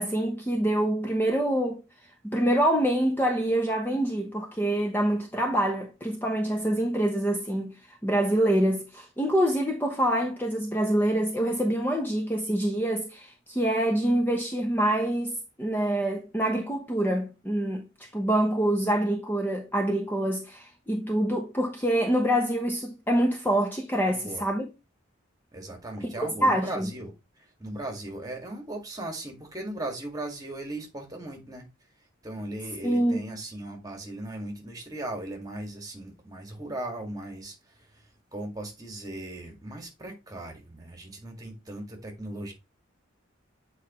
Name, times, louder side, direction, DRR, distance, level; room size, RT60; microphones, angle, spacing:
voice 1, 0.0-1.8 2.2-24.7 26.2-26.9 32.8-33.2, right 1 dB, 10° left, 0.9 m, -26 dB
voice 2, 24.1-24.5 25.5-31.7 32.2-42.5, right 1 dB, 20° right, 1.9 m, -38 dB
8.2 x 4.6 x 3.0 m
head